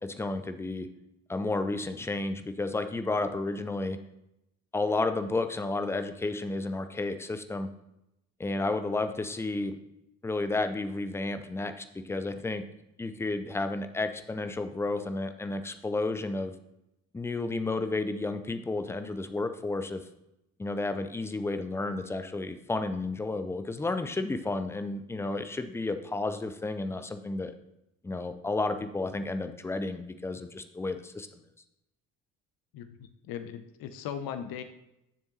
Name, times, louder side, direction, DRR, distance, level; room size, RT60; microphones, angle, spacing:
voice 1, 0.0-0.9 1.3-4.0 4.7-7.7 8.4-9.8 10.2-12.6 13.0-16.6 17.1-20.0 20.6-27.5 28.0-31.4, left 2 dB, 5° left, 9 dB, 0.4 m, -32 dB
voice 2, 32.7-34.6, left 8 dB, 50° left, 9 dB, 0.8 m, -38 dB
10.0 x 6.9 x 2.8 m, 0.86 s
figure-of-eight pair, 45°, 46 cm